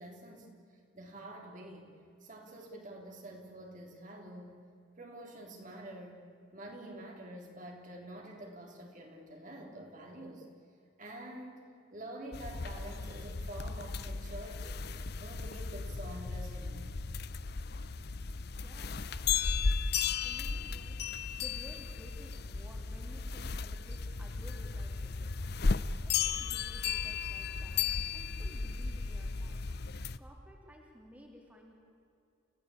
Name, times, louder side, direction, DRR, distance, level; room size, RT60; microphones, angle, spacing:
voice 1, 0.0-1.9 2.2-4.7 5.0-6.2 6.5-10.5 11.0-14.9 15.2-16.9, right 1 dB, 40° right, 1 dB, 3.6 m, -47 dB
sound 1, 12.3-30.2, left 5 dB, 55° left, 0.7 m, -35 dB
voice 2, 18.4-19.6 20.2-21.0 21.4-25.5 26.0-27.9 28.1-29.6 30.2-31.7, equal, 5° right, -1 dB, 3.4 m, -55 dB
29.5 x 17.0 x 8.6 m, 2.5 s
head